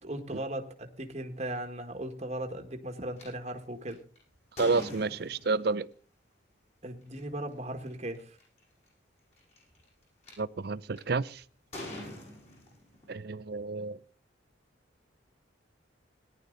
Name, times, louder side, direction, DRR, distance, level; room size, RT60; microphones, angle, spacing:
voice 1, 0.0-4.0 6.8-8.4, right 1 dB, 35° right, 5 dB, 1.6 m, -37 dB
sound 1, 3.2-3.3 3.9-5.7 7.0-7.2 7.9-8.0 8.1-8.6 9.3-10.3 11.0-11.2 11.7-13.1, left 1 dB, 35° left, 6.5 m, -43 dB
voice 2, 4.6-5.9 10.4-11.4 13.1-14.0, right 4 dB, 55° right, 17 dB, 0.6 m, -30 dB
18.0 x 11.0 x 3.9 m, 0.41 s
head